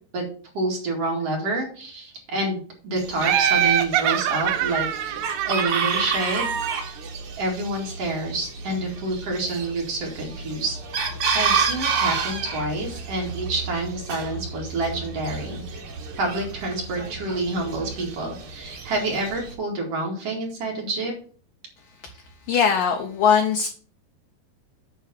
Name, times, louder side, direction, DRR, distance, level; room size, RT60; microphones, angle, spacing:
voice 1, 0.5-5.2 5.4-6.9 7.4-11.1 11.3-15.6 16.2-21.1, right 2 dB, 45° right, 0 dB, 2.6 m, -28 dB
Chicken rooster, 3.0-19.5, right 5 dB, 60° right, 1.4 m, -30 dB
Laughter, 3.2-6.9, right 10 dB, 85° right, 1.9 m, -24 dB
voice 2, 22.5-23.7, left 7 dB, 70° left, 3 dB, 2.3 m, -20 dB
9.4 x 4.0 x 6.9 m, 0.43 s
omnidirectional pair, 4.7 m